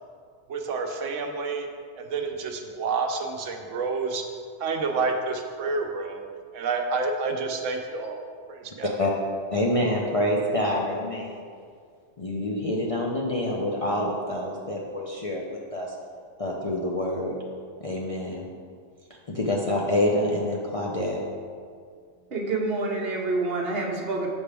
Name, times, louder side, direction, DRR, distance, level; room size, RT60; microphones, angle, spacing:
voice 1, 0.5-1.7 2.0-4.2 4.6-6.2 6.5-8.2 8.5-9.0, right 4 dB, 85° right, 4 dB, 1.0 m, -29 dB
voice 2, 9.5-11.4 12.2-15.9 16.4-17.4 17.8-18.5 19.3-21.2, left 1 dB, 40° left, -3 dB, 0.5 m, -27 dB
voice 3, 22.3-24.3, right 3 dB, 55° right, 0 dB, 1.1 m, -27 dB
7.2 x 6.0 x 3.4 m, 2.1 s
omnidirectional pair, 1.3 m